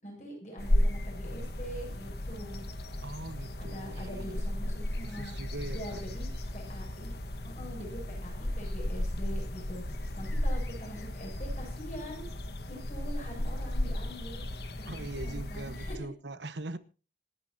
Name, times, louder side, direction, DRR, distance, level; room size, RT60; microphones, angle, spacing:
voice 1, 0.0-2.6 3.6-5.3 5.7-6.3 6.5-7.2 7.4-9.8 10.2-12.3 12.7-14.5 14.8-15.9, equal, 40° left, 7.6 m, -44 dB
sound 1, 0.6-16.0, left 1 dB, 65° left, 1.5 m, -34 dB
voice 2, 3.0-4.4 5.0-6.1 14.9-16.8, right 2 dB, 85° right, 1.1 m, -41 dB
26.5 x 10.0 x 2.8 m
head